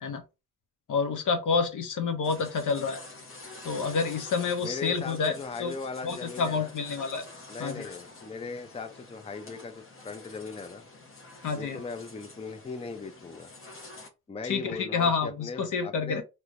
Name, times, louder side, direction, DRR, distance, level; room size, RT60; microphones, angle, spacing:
voice 1, 0.9-3.0 3.6-5.7 6.0-7.2 7.6-7.9 11.4-11.8 14.4-16.2, left 5 dB, 70° left, 0.9 m, -28 dB
sound 1, 2.2-14.1, left 2 dB, 40° left, 1.0 m, -47 dB
voice 2, 4.6-6.7 7.5-10.9 11.5-13.5 14.3-16.2, left 4 dB, 20° left, 0.5 m, -39 dB
3.3 x 2.9 x 2.5 m
cardioid pair, 65°, 33 cm